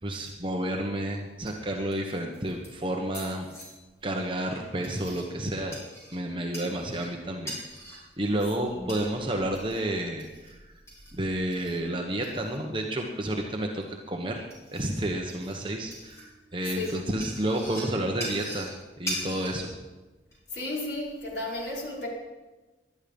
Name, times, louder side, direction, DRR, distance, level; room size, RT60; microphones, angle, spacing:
voice 1, 0.0-3.5 4.0-5.7 6.1-7.6 7.9-10.6 11.1-14.4 14.7-16.2 16.5-18.7 19.0-19.7, right 1 dB, 30° right, 1 dB, 1.2 m, -30 dB
sound 1, 0.8-20.3, equal, 15° left, 4.9 m, -43 dB
voice 2, 16.6-17.0 20.5-22.1, left 2 dB, 85° left, -3 dB, 5.1 m, -33 dB
19.0 x 12.0 x 5.4 m, 1.2 s
head